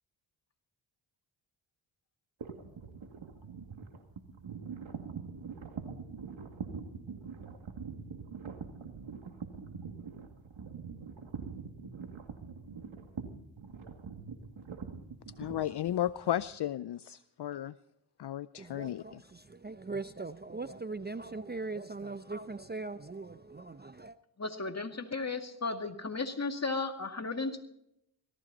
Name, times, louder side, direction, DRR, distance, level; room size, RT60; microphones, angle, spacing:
sound 1, 2.4-16.5, right 5 dB, 65° right, 2.3 m, -43 dB
voice 1, 15.4-17.7 18.2-19.0, left 12 dB, 55° left, 0.5 m, -34 dB
voice 2, 18.6-24.2, right 3 dB, 20° right, 0.6 m, -40 dB
voice 3, 24.4-27.6, left 3 dB, 30° left, 2.1 m, -35 dB
17.5 x 15.0 x 4.1 m
cardioid pair, 45°, 50 cm